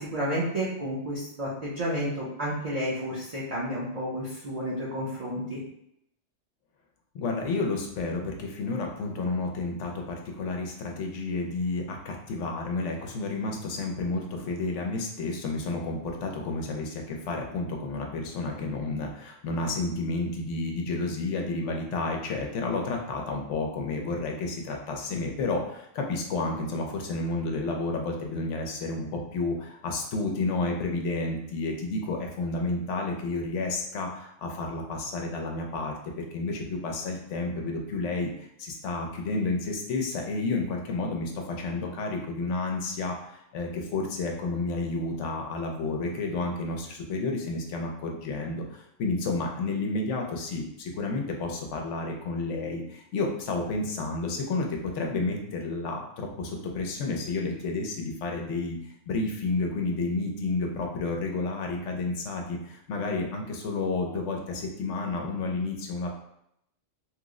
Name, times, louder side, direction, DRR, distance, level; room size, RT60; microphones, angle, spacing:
voice 1, 0.0-5.6, equal, 40° right, -7 dB, 0.6 m, -31 dB
voice 2, 7.1-41.3 41.6-58.8 59.1-66.1, left 3 dB, 85° left, 1 dB, 0.9 m, -31 dB
3.0 x 2.0 x 3.6 m, 0.76 s
omnidirectional pair, 1.2 m